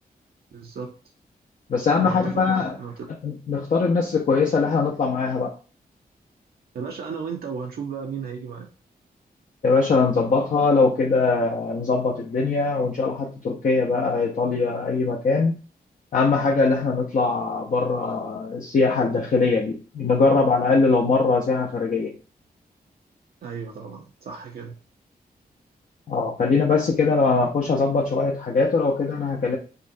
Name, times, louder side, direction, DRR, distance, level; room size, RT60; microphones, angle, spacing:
voice 1, 0.5-0.9 2.0-3.1 6.7-8.7 23.4-24.8, right 6 dB, 70° right, 1 dB, 0.6 m, -34 dB
voice 2, 1.7-2.8 3.2-5.5 9.6-15.5 16.1-22.1 26.1-29.6, left 4 dB, 55° left, -1 dB, 0.6 m, -21 dB
5.3 x 2.2 x 2.6 m, 0.36 s
wide cardioid pair, 95°, 16 cm